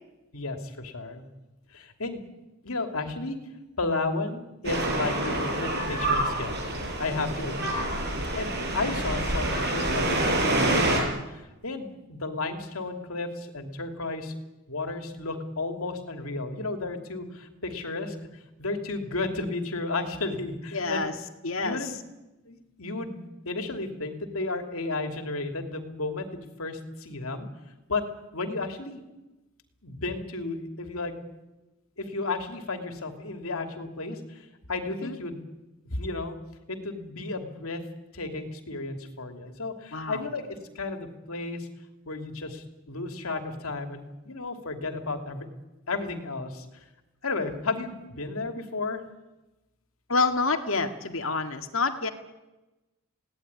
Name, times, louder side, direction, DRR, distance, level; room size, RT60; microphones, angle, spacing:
voice 1, 0.3-1.3 1.7-2.2 2.6-3.4 3.8-6.6 7.0-7.8 8.4-14.4 14.7-18.2 18.6-21.1 21.6-21.9 22.5-26.3 26.6-27.5 27.9-28.0 28.3-29.0 29.8-31.1 32.0-35.4 35.8-36.4 36.7-37.8 38.1-41.7 42.0-45.5 45.9-46.8 47.2-49.0, left 3 dB, 85° left, 6 dB, 2.9 m, -33 dB
sound 1, 4.6-11.0, right 1 dB, 50° right, 5.8 m, -27 dB
voice 2, 20.7-21.1 21.4-21.9 34.9-35.2 39.9-40.2 50.1-52.1, left 3 dB, 70° left, 6 dB, 2.1 m, -28 dB
21.5 x 17.5 x 9.8 m, 1.0 s
head